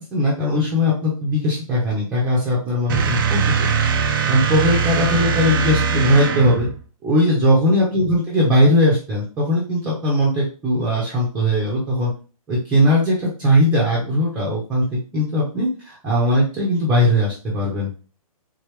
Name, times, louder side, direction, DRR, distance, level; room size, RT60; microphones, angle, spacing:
voice 1, 0.0-3.7 3.9-6.7 7.0-12.1 12.5-18.0, equal, 10° right, -6 dB, 0.9 m, -19 dB
sound 1, 2.9-6.8, right 6 dB, 35° right, 0.5 m, -21 dB
3.7 x 3.3 x 3.3 m, 0.36 s
hypercardioid pair, 165°, 19 cm